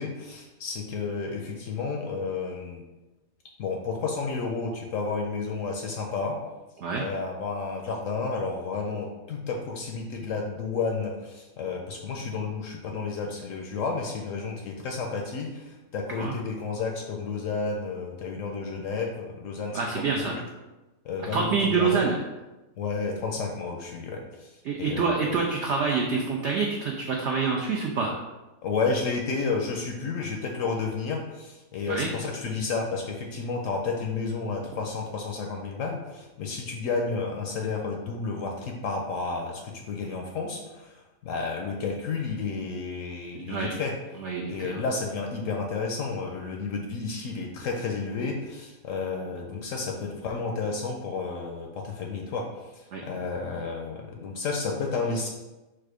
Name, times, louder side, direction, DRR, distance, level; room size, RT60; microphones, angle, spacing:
voice 1, 0.0-2.8 3.6-6.4 6.9-19.8 20.2-20.4 21.0-22.1 22.8-25.2 28.6-43.9 44.5-55.3, left 4 dB, 70° left, 1 dB, 0.8 m, -31 dB
voice 2, 19.7-20.4 21.2-22.2 24.6-28.2 31.8-32.1 43.3-43.7 44.2-44.8 52.9-53.0, right 5 dB, 80° right, 0 dB, 0.6 m, -27 dB
4.4 x 2.4 x 4.7 m, 1.1 s
omnidirectional pair, 1.7 m